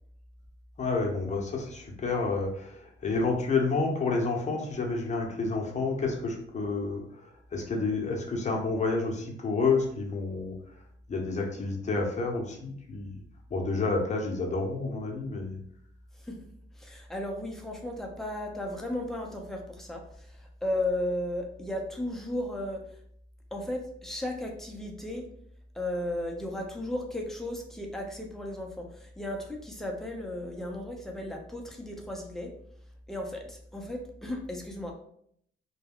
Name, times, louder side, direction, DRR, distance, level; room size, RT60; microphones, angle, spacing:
voice 1, 0.8-10.6 11.1-13.2 13.5-15.6, left 3 dB, 35° left, 1 dB, 0.7 m, -29 dB
voice 2, 16.7-22.8 23.5-25.3 25.7-32.5 33.1-34.9, left 1 dB, ahead, 0 dB, 0.6 m, -35 dB
2.2 x 2.2 x 3.5 m, 0.68 s
cardioid pair, 90°, 20 cm